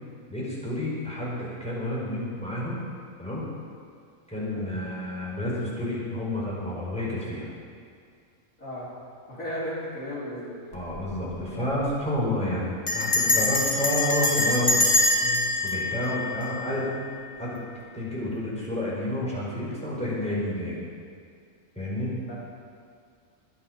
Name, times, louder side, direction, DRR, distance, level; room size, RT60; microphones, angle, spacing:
voice 1, 0.3-2.8 3.2-3.5 4.3-7.5 10.7-14.9 15.2-16.9 17.4-17.6 17.9-20.8 21.7-22.1, left 1 dB, 5° left, -7 dB, 5.0 m, -30 dB
voice 2, 8.6-8.9 9.3-10.6 22.3-22.4, equal, 90° left, -7 dB, 4.6 m, -34 dB
Bell, 10.7-11.1 11.4-11.5 11.7-12.1 12.9-17.0, left 2 dB, 45° left, 2.1 m, -24 dB
21.5 x 9.8 x 5.3 m, 2.2 s
omnidirectional pair, 1.3 m